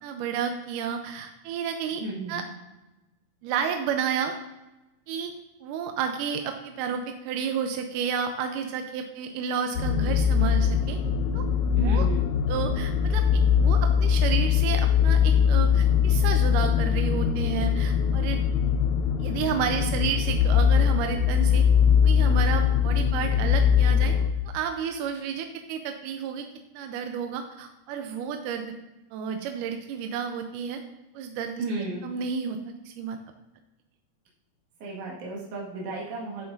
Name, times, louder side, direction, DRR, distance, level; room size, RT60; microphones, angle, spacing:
voice 1, 0.0-2.0 2.3-2.4 3.4-4.3 5.1-5.3 5.6-11.0 11.3-11.5 11.8-12.1 12.5-18.4 19.2-21.7 22.0-24.1 24.5-26.5 26.7-28.7 29.1-30.8 31.1-31.6 32.0-32.6 32.9-33.2, right 7 dB, 90° right, 5 dB, 2.2 m, -31 dB
voice 2, 1.9-2.5 11.8-12.3 31.6-32.1 34.8-36.5, right 2 dB, 70° right, -4 dB, 3.2 m, -33 dB
sound 1, 9.8-24.3, left 7 dB, 75° left, 1.8 m, -22 dB
10.0 x 7.8 x 2.6 m, 1.0 s
omnidirectional pair, 3.7 m